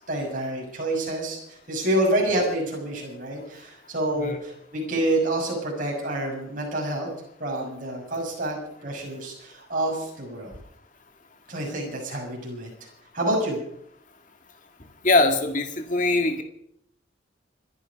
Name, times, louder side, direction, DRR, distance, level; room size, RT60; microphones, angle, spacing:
voice 1, 0.1-7.1 7.4-10.6 11.5-12.7 13.1-13.6, right 1 dB, 40° right, -1 dB, 6.6 m, -28 dB
voice 2, 15.0-16.4, left 2 dB, 40° left, 6 dB, 1.9 m, -22 dB
25.5 x 10.5 x 5.2 m, 0.72 s
head